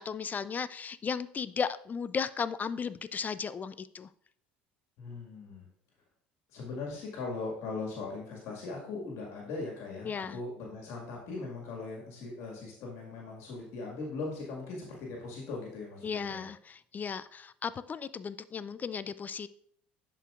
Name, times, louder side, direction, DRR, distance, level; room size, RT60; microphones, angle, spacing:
voice 1, 0.0-4.1 10.0-10.4 16.0-19.5, left 6 dB, 30° left, 16 dB, 0.4 m, -35 dB
voice 2, 5.0-5.7 6.5-16.5, left 3 dB, 60° left, -1 dB, 1.8 m, -39 dB
11.0 x 4.5 x 2.4 m, 0.64 s
hypercardioid pair, 65°, 6 cm